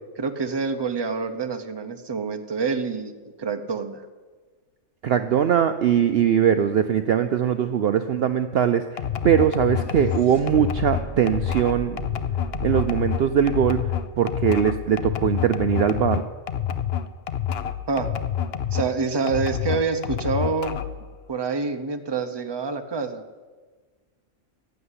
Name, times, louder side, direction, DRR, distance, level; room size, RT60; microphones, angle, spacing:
voice 1, 0.2-3.1 3.4-4.0 17.9-18.1 18.7-20.8 21.3-23.2, right 4 dB, 25° right, 7 dB, 0.8 m, -27 dB
voice 2, 5.0-12.0 12.6-16.2, right 9 dB, 60° right, 9 dB, 0.7 m, -21 dB
sound 1, 7.0-7.1 7.3-15.5, right 5 dB, 30° left, 2.4 m, -40 dB
sound 2, 9.0-18.9 19.3-21.0, left 9 dB, 60° left, 0.9 m, -28 dB
15.5 x 7.8 x 9.8 m, 1.4 s
omnidirectional pair, 1.3 m